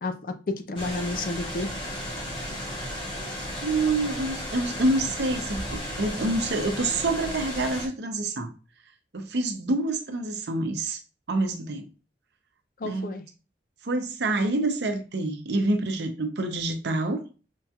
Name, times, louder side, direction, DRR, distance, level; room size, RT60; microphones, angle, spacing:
voice 1, 0.0-1.7 12.8-13.2, left 2 dB, 50° left, 0.4 m, -31 dB
sound 1, 0.8-7.9, equal, 25° left, 1.1 m, -34 dB
voice 2, 3.4-8.5 9.1-11.0 11.3-11.9 12.8-13.1 13.8-17.3, right 2 dB, 75° right, 0.6 m, -27 dB
5.3 x 2.3 x 2.8 m
head